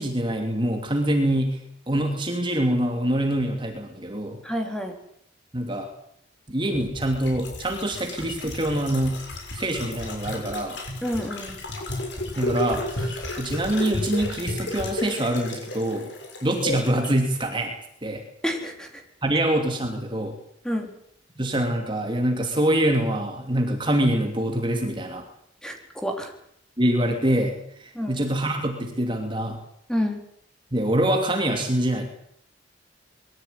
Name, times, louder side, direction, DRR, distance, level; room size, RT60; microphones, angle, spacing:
voice 1, 0.0-1.6 1.9-4.4 5.5-5.9 6.5-9.2 9.5-10.8 12.4-16.1 16.4-17.7 18.0-18.2 19.2-20.3 21.4-25.2 26.8-29.6 30.7-32.1, right 1 dB, 25° right, 4 dB, 2.9 m, -25 dB
voice 2, 4.4-4.9 11.0-11.6 18.4-19.0 20.6-20.9 25.6-26.3 27.9-28.2 29.9-30.2, equal, 5° left, 3 dB, 4.1 m, -29 dB
sound 1, 6.7-17.1 17.4-17.5, left 1 dB, 70° left, 7.3 m, -33 dB
22.5 x 15.5 x 9.8 m, 0.72 s
head